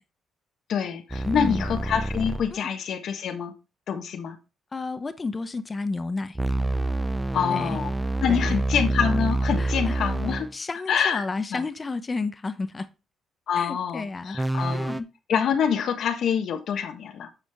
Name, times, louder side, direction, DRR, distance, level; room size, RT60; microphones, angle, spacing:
voice 1, 0.7-3.5 3.9-4.4 7.3-7.9 8.2-10.5 10.9-11.2 11.5-11.6 13.5-14.9 15.3-17.3, left 7 dB, 70° left, 1.2 m, -26 dB
sound 1, 1.1-2.5 6.3-10.5 14.3-15.0, right 2 dB, 10° right, 0.6 m, -27 dB
voice 2, 1.2-1.7 2.5-2.7 4.7-6.4 7.5-7.8 8.3-8.6 9.6-10.0 10.5-12.9 13.5-14.4 14.7-15.1, left 3 dB, 30° left, 0.9 m, -31 dB
10.0 x 5.0 x 3.6 m
cardioid pair, 90°, 0 cm